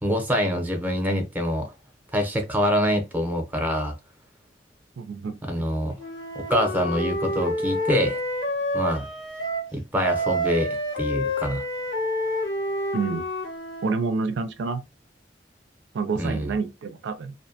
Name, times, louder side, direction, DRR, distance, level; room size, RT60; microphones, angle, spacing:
voice 1, 0.0-1.7 2.1-3.9 5.4-6.0 6.3-8.2 8.7-9.1 9.7-11.6 16.1-16.5, equal, 10° right, 0.6 m, -25 dB
voice 2, 5.0-5.4 12.9-13.3 13.8-14.8 15.9-17.3, right 4 dB, 70° right, 0.4 m, -28 dB
Wind instrument woodwind instrument, 6.0-9.7 10.0-14.0, left 1 dB, 85° left, 1.2 m, -28 dB
2.6 x 2.1 x 2.7 m
head